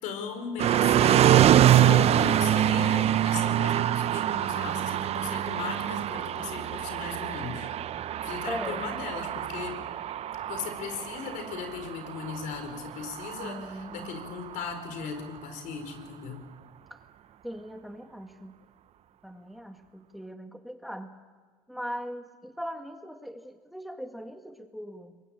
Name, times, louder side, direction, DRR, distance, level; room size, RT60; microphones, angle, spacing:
voice 1, 0.0-7.7 8.2-9.8 10.4-16.4, left 6 dB, 75° left, 7 dB, 4.4 m, -37 dB
sound 1, 0.6-14.6, right 11 dB, 50° right, 0.6 m, -25 dB
voice 2, 8.5-8.8 13.4-14.2 16.9-17.0 17.4-18.5 19.2-21.2 21.7-25.1, equal, ahead, 6 dB, 1.8 m, -40 dB
23.0 x 21.0 x 8.8 m, 1.5 s
supercardioid pair, 90°, 13 cm